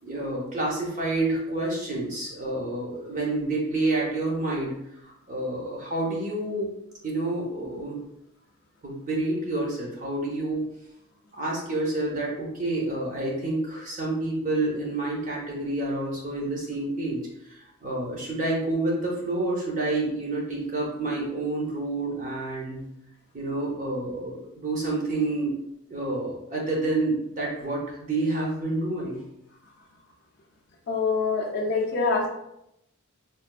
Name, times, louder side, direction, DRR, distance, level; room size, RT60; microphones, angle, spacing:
voice 1, 0.0-4.8 5.0-6.7 7.0-8.0 8.8-10.7 11.3-22.8 23.3-25.5 25.9-29.2, right 2 dB, 35° right, -3 dB, 0.7 m, -28 dB
voice 2, 30.9-32.3, left 4 dB, 50° left, -2 dB, 0.4 m, -25 dB
3.6 x 2.4 x 2.2 m, 0.82 s
head